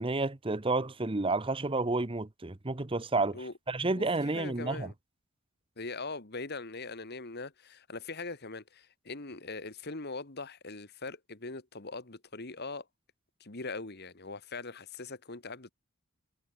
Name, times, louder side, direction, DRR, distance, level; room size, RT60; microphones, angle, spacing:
voice 1, 0.0-3.4 3.7-4.9, right 3 dB, 25° right, 0.8 m, -30 dB
voice 2, 3.9-4.9 5.8-12.9 13.4-15.7, left 3 dB, 45° left, 1.9 m, -41 dB
head